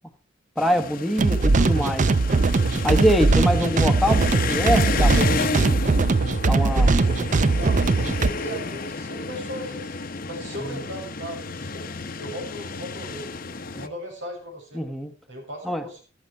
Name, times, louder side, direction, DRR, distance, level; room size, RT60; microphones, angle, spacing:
sound 1, 0.6-13.9, left 4 dB, 50° left, 0.9 m, -31 dB
voice 1, 0.6-2.1 2.8-5.7 6.5-6.9 10.6-10.8 14.7-15.1 15.6-15.8, equal, ahead, 4 dB, 1.2 m, -24 dB
sound 2, 1.2-8.3, right 3 dB, 40° right, 0.5 m, -20 dB
voice 2, 7.4-11.9 12.2-13.3 13.7-14.8 15.3-16.0, equal, 85° right, 1 dB, 6.6 m, -37 dB
14.0 x 11.5 x 4.5 m, 0.38 s
head